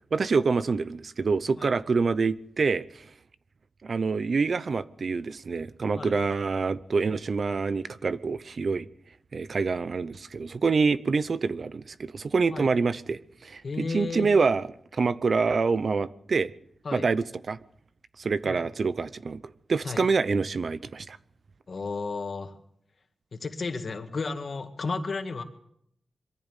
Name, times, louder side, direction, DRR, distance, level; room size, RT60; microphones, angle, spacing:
voice 1, 0.1-3.0 3.8-8.9 9.3-14.7 14.9-16.5 16.9-17.6 18.2-19.4 19.7-21.2, right 4 dB, 55° right, 0.7 m, -26 dB
voice 2, 13.6-14.3 16.8-17.1 18.4-18.6 19.8-20.0 21.7-22.6 23.3-25.4, left 4 dB, 50° left, 2.1 m, -33 dB
23.0 x 14.5 x 8.2 m
wide cardioid pair, 100°, 0 cm